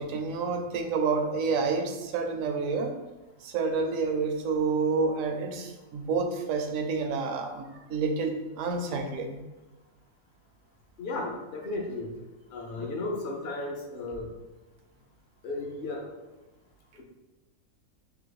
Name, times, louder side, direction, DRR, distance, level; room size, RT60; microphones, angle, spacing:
voice 1, 0.0-2.9 3.4-9.4, right 4 dB, 75° right, 5 dB, 0.9 m, -29 dB
voice 2, 11.0-12.1 12.5-14.3 15.4-16.0 17.0-17.1, left 2 dB, 50° left, 0 dB, 0.7 m, -34 dB
3.4 x 2.9 x 3.9 m, 1.1 s
omnidirectional pair, 1.5 m